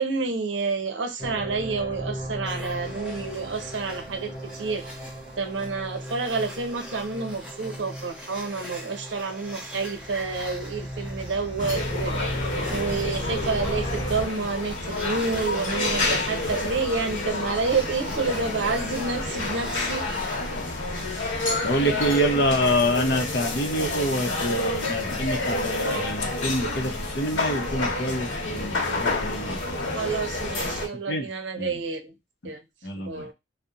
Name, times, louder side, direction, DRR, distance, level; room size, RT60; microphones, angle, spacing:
voice 1, 0.0-4.9 5.4-12.4 12.7-20.1 29.9-32.1 32.4-32.6 33.0-33.3, right 4 dB, 75° right, 0.6 m, -29 dB
sound 1, 1.2-14.3, equal, 30° left, 0.9 m, -36 dB
sound 2, 2.4-21.8, equal, 5° right, 0.6 m, -43 dB
sound 3, 11.6-30.9, left 2 dB, 90° left, 0.9 m, -29 dB
voice 2, 21.6-29.9 31.1-31.3 31.6-31.8 32.8-33.3, equal, 60° left, 0.7 m, -26 dB
2.8 x 2.1 x 2.4 m
head